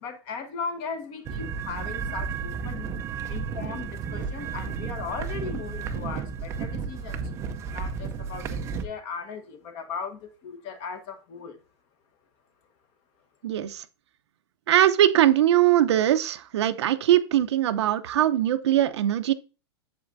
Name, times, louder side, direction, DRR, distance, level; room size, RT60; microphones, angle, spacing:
voice 1, 0.0-2.9 3.3-7.3 7.7-11.6, left 5 dB, 35° left, 1.1 m, -37 dB
sound 1, 1.3-8.9, right 6 dB, 20° right, 0.5 m, -33 dB
voice 2, 13.4-13.8 14.7-19.3, right 12 dB, 80° right, 0.7 m, -21 dB
8.0 x 7.6 x 2.6 m
supercardioid pair, 160°, 14 cm